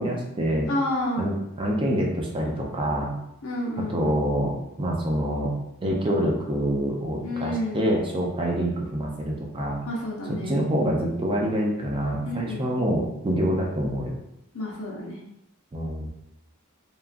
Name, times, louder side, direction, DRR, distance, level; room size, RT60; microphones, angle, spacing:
voice 1, 0.0-0.7 1.2-3.1 3.9-5.5 5.8-9.8 10.4-14.1 15.7-16.1, equal, 25° right, -1 dB, 0.4 m, -26 dB
voice 2, 0.7-1.2 3.4-4.2 7.2-7.9 9.9-10.6 12.2-12.7 14.5-15.2, left 1 dB, 65° left, -3 dB, 0.6 m, -30 dB
2.9 x 2.3 x 2.4 m, 0.85 s
head